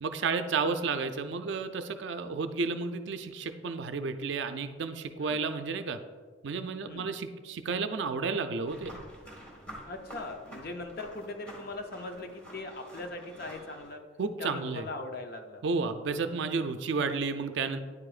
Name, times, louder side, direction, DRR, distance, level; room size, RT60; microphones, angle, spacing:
voice 1, 0.0-6.0 6.4-8.9 14.2-14.9 15.6-17.8, right 4 dB, 65° right, 9 dB, 0.4 m, -32 dB
sound 1, 8.7-13.9, equal, 5° left, 1.6 m, -48 dB
voice 2, 9.9-14.0 14.4-15.6, left 2 dB, 50° left, 5 dB, 0.6 m, -40 dB
9.6 x 4.9 x 2.4 m, 1.6 s
head